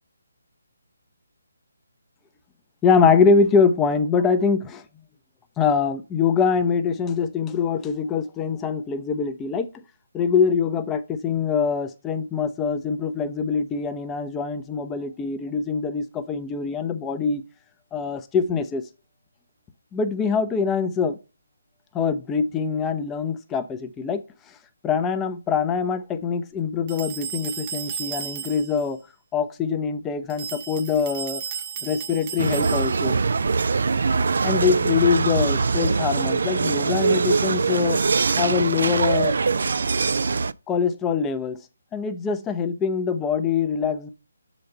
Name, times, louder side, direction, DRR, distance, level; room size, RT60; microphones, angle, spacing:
voice 1, 2.8-4.8 5.6-9.7 10.1-17.4 17.9-18.8 19.9-21.2 21.9-24.2 24.8-29.0 29.3-31.4 31.8-33.2 34.4-38.0 38.4-39.4 40.7-41.6 41.9-44.1, left 6 dB, 15° left, 0.6 m, -23 dB
sound 1, 26.9-28.8 30.3-33.2, right 8 dB, 30° right, 0.8 m, -34 dB
sound 2, 32.4-40.5, right 4 dB, 60° right, 0.3 m, -22 dB
6.6 x 4.0 x 5.4 m
figure-of-eight pair, 145°, 0 cm